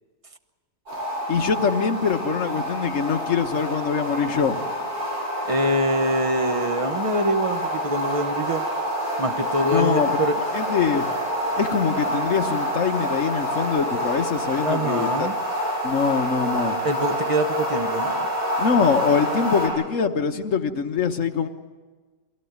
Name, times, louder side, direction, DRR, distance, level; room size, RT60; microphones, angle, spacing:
sound 1, 0.9-19.7, equal, 65° right, 8.8 m, -27 dB
voice 1, 1.3-4.6 9.7-10.1 10.5-11.0 11.6-15.3 15.8-16.8 18.6-21.5, left 6 dB, 50° left, 5 dB, 1.4 m, -23 dB
voice 2, 5.4-8.6 9.2-10.4 14.6-15.3 16.8-18.3, right 1 dB, 25° right, 8 dB, 0.9 m, -24 dB
23.5 x 17.0 x 9.5 m, 1.4 s
omnidirectional pair, 1.8 m